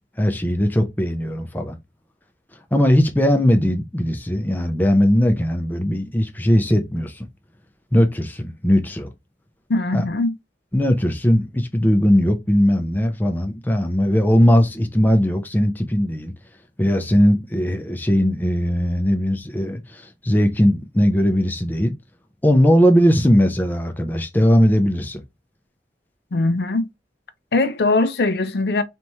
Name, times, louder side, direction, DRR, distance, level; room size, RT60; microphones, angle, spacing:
voice 1, 0.2-1.8 2.7-7.3 7.9-9.1 9.9-10.0 10.7-16.3 16.8-22.0 22.4-25.2, equal, 10° left, 0.6 m, -19 dB
voice 2, 9.7-10.3 26.3-26.9 27.5-28.8, left 2 dB, 65° left, 0.6 m, -20 dB
3.4 x 3.0 x 4.1 m
head